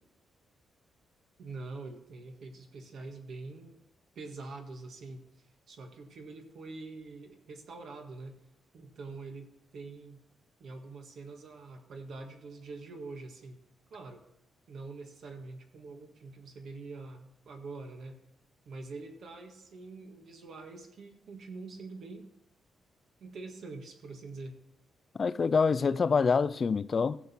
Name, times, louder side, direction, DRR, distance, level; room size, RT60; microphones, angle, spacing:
voice 1, 1.4-3.8 4.1-8.4 8.7-10.2 10.6-13.6 13.9-14.2 14.7-18.2 18.6-22.3 23.2-24.5, right 3 dB, 60° right, 1.7 m, -45 dB
voice 2, 25.2-27.2, left 5 dB, 35° left, 0.4 m, -26 dB
16.0 x 7.4 x 4.4 m
wide cardioid pair, 155°, 0 cm